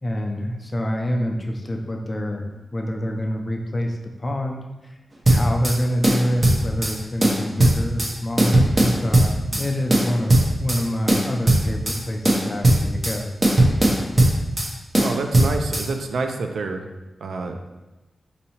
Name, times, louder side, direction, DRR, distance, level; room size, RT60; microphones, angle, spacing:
voice 1, 0.0-5.0 5.3-13.3, equal, 25° left, 2 dB, 0.4 m, -26 dB
sound 1, 5.2-5.8 6.0-6.9 7.2-8.1 8.4-9.6 9.9-10.8 11.1-12.0 12.2-13.2 13.4-14.7 14.9-15.8, right 1 dB, 30° right, 0.6 m, -18 dB
voice 2, 15.0-16.9 17.2-17.6, right 3 dB, 85° right, 5 dB, 0.3 m, -27 dB
4.1 x 2.7 x 2.8 m, 1.1 s
wide cardioid pair, 110°, 0 cm